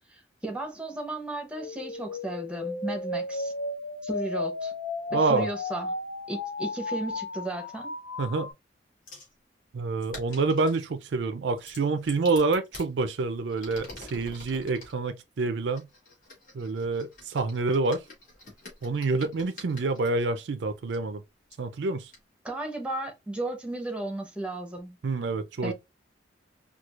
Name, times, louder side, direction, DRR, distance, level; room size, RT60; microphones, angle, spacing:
voice 1, 0.1-3.5 4.0-4.7 5.1-5.9 6.3-7.9 22.4-25.0 25.6-25.7, right 2 dB, 5° right, 0.7 m, -34 dB
sound 1, 1.5-8.5, left 2 dB, 65° left, 0.5 m, -34 dB
voice 2, 5.1-5.5 8.2-8.5 9.7-15.9 16.5-18.0 18.8-21.2 21.6-22.1 25.0-25.7, right 3 dB, 70° right, 0.4 m, -27 dB
Ibuprofen packet, 9.1-9.3 10.0-10.9 11.6-12.9 13.5-14.9 15.7-20.1 20.9-21.0 21.5-21.6 22.1-22.2, left 2 dB, 45° left, 1.9 m, -46 dB
4.4 x 2.3 x 2.3 m
head